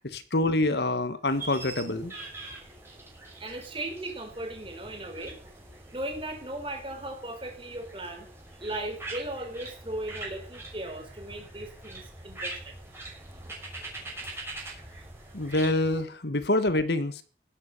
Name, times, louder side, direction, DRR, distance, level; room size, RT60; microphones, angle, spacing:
voice 1, 0.0-2.1 15.3-17.2, left 2 dB, 70° left, 1.6 m, -26 dB
sound 1, 1.3-16.0, right 2 dB, 15° right, 6.0 m, -43 dB
voice 2, 3.4-5.4 5.9-8.3 8.6-12.7, right 1 dB, 30° right, 4.7 m, -37 dB
16.5 x 12.0 x 6.8 m
head